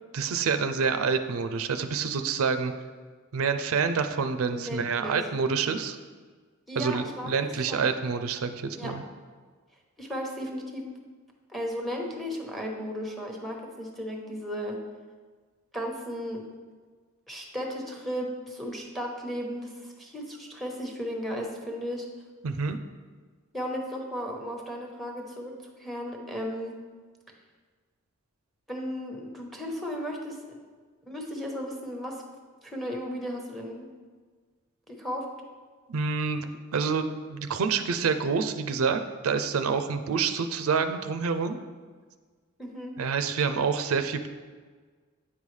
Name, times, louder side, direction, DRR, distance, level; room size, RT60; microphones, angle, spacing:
voice 1, 0.1-2.7 3.3-6.0 6.8-9.0 22.4-22.8 35.9-41.6 43.0-44.3, right 5 dB, 90° right, 9 dB, 0.4 m, -27 dB
voice 2, 4.4-5.2 6.7-7.9 8.8-8.9 10.0-10.9 11.5-14.8 15.7-16.4 17.3-22.1 23.5-26.8 28.7-30.4 31.1-32.2 32.6-33.9 34.9-35.3 39.8-39.9 42.6-43.0, equal, ahead, 1 dB, 0.9 m, -35 dB
8.3 x 5.4 x 3.2 m, 1.5 s
head